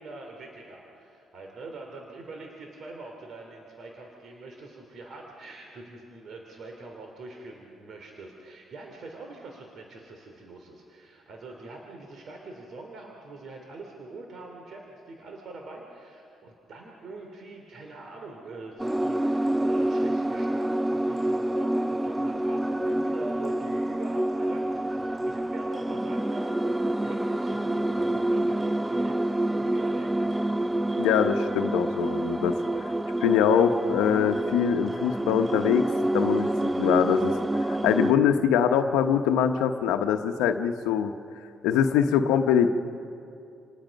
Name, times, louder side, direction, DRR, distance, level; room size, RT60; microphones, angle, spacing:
voice 1, 0.0-30.4, right 2 dB, 60° right, 1 dB, 3.0 m, -44 dB
sound 1, 18.8-38.1, right 1 dB, 10° right, 0.6 m, -27 dB
voice 2, 31.0-32.9 33.2-35.9 36.1-37.3 37.6-41.1 41.6-42.7, left 8 dB, 85° left, 7 dB, 1.0 m, -23 dB
28.5 x 19.5 x 5.3 m, 2.6 s
supercardioid pair, 65°, 0 cm